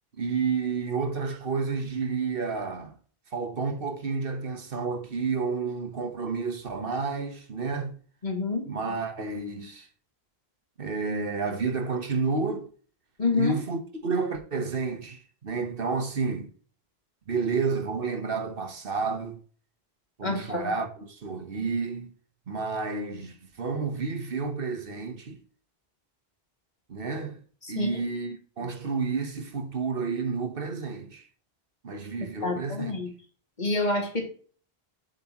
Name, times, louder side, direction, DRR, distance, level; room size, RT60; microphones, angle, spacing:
voice 1, 0.2-2.9 3.3-8.0 8.7-9.9 10.8-12.7 13.3-16.5 17.3-19.4 20.2-22.1 22.5-25.4 26.9-27.4 27.7-31.2 31.8-32.9, right 4 dB, 65° right, 1.4 m, -30 dB
voice 2, 8.2-8.6 13.2-13.6 20.2-20.7 27.6-28.0 32.4-33.1 33.6-34.3, left 3 dB, 45° left, 2.5 m, -27 dB
8.2 x 8.0 x 3.0 m
omnidirectional pair, 1.0 m